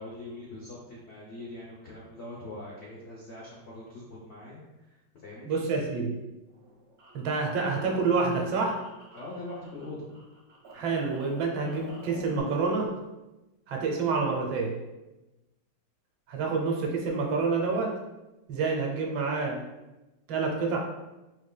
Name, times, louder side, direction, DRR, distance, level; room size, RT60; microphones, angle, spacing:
voice 1, 0.0-5.6 9.1-10.1, left 2 dB, 70° left, -5 dB, 0.6 m, -42 dB
voice 2, 5.5-6.1 7.1-8.8 10.7-13.1 13.7-14.8 16.3-18.0 18.5-19.6 20.3-20.8, right 4 dB, 80° right, 1 dB, 1.4 m, -28 dB
sound 1, 6.5-9.8 10.1-12.4, right 2 dB, 55° right, 1.2 m, -49 dB
4.4 x 3.2 x 2.2 m, 1.0 s
omnidirectional pair, 2.1 m